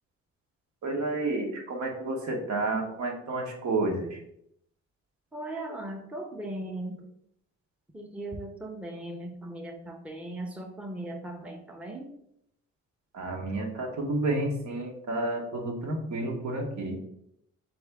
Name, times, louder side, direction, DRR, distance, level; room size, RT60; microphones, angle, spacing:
voice 1, 0.8-4.2 13.1-17.0, right 2 dB, 65° right, 1 dB, 1.3 m, -30 dB
voice 2, 5.3-7.1 7.9-12.1, right 1 dB, 5° right, 2 dB, 0.7 m, -38 dB
4.4 x 3.5 x 3.5 m, 0.74 s
cardioid pair, 90°, 30 cm